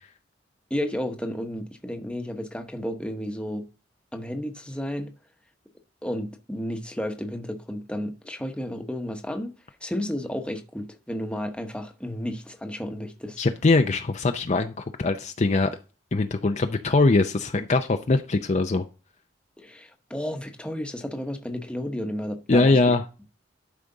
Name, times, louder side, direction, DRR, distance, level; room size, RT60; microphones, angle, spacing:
voice 1, 0.7-3.7 4.1-5.1 6.0-9.5 9.8-13.4 19.6-22.8, equal, 5° left, 1.0 m, -32 dB
voice 2, 13.4-15.7 16.1-18.8 22.5-23.0, left 3 dB, 40° left, 0.5 m, -22 dB
12.0 x 5.0 x 3.8 m
head